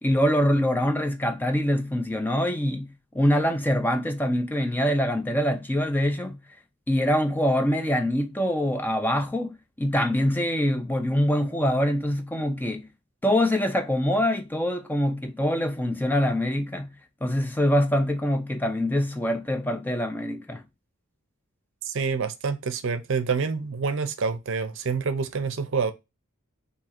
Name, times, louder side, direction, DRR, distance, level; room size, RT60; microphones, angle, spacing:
voice 1, 0.0-6.4 6.9-12.9 13.2-16.9 17.2-20.6, equal, 10° left, 0.3 m, -24 dB
voice 2, 21.8-25.9, right 5 dB, 60° right, 0.6 m, -27 dB
3.6 x 2.8 x 4.3 m
head